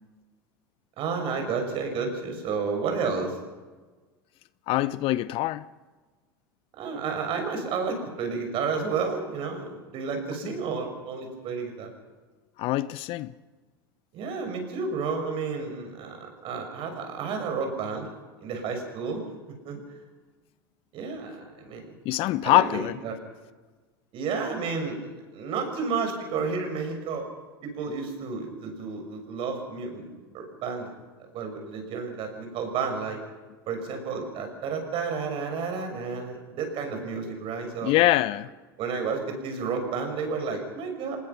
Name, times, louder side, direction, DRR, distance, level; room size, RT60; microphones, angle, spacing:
voice 1, 1.0-3.4 6.8-11.9 14.1-18.1 18.4-19.2 19.6-19.8 20.9-21.9 22.4-23.2 24.1-27.3 27.6-30.9 31.3-33.2 33.7-37.9 38.8-41.2, right 5 dB, 50° right, 6.3 m, -31 dB
voice 2, 4.7-5.6 10.4-10.5 12.6-13.3 22.0-22.9 37.8-38.5, left 16 dB, 50° left, 0.7 m, -24 dB
25.0 x 20.5 x 6.1 m
hypercardioid pair, 80°, 12 cm